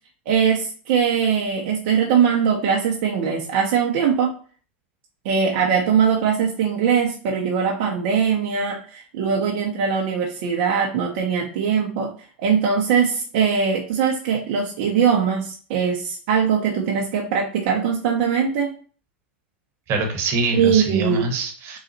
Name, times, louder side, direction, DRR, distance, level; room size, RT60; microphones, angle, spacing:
voice 1, 0.3-4.3 5.2-12.1 12.4-18.7 20.5-21.2, right 7 dB, 65° right, -1 dB, 0.8 m, -21 dB
voice 2, 19.9-21.8, right 3 dB, 45° right, 3 dB, 1.1 m, -24 dB
3.9 x 2.4 x 4.1 m, 0.41 s
hypercardioid pair, 105°, 6 cm